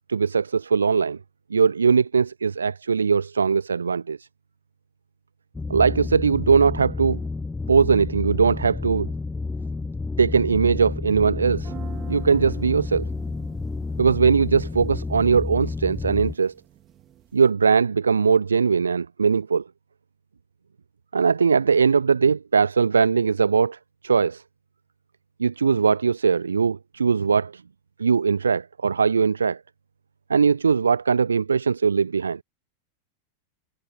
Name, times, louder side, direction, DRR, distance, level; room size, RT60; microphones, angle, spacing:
voice 1, 0.1-1.2 1.5-4.3 5.7-7.2 7.7-9.1 10.2-11.7 12.1-13.1 14.0-16.5 17.3-19.6 21.1-23.8 24.0-24.4 25.4-27.6 28.0-29.6 30.3-32.4, right 5 dB, 75° right, 0.5 m, -20 dB
sound 1, 5.5-16.3, left 3 dB, 10° left, 0.9 m, -30 dB
sound 2, 11.5-17.5, right 11 dB, 30° right, 3.3 m, -46 dB
figure-of-eight pair, 90°, 0 cm